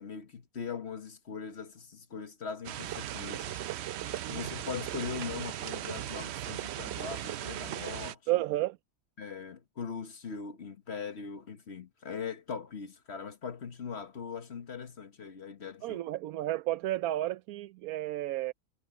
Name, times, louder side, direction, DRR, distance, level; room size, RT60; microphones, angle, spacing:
voice 1, 0.0-3.6 4.3-8.2 9.2-16.0, left 6 dB, 50° left, 1.5 m, -40 dB
sound 1, 2.6-8.1, right 12 dB, 65° right, 0.7 m, -37 dB
voice 2, 8.3-8.8 15.8-18.5, right 15 dB, 90° right, 1.1 m, -32 dB
omnidirectional pair, 1.5 m